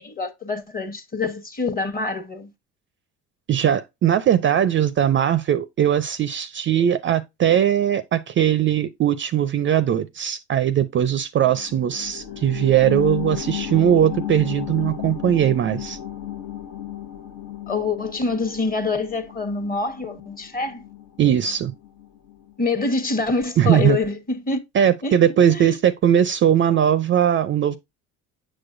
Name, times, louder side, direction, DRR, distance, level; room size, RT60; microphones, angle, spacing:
voice 1, 0.0-2.5 17.7-20.8 22.6-24.6 25.0-25.2 25.5-25.8, left 3 dB, 25° left, 1.1 m, -26 dB
voice 2, 3.5-16.0 21.2-21.7 23.6-24.0 24.7-27.8, right 10 dB, 35° right, 0.4 m, -19 dB
sound 1, 11.4-22.5 22.9-23.0, left 12 dB, 70° left, 1.1 m, -34 dB
6.2 x 6.1 x 2.5 m
supercardioid pair, 75°, 34 cm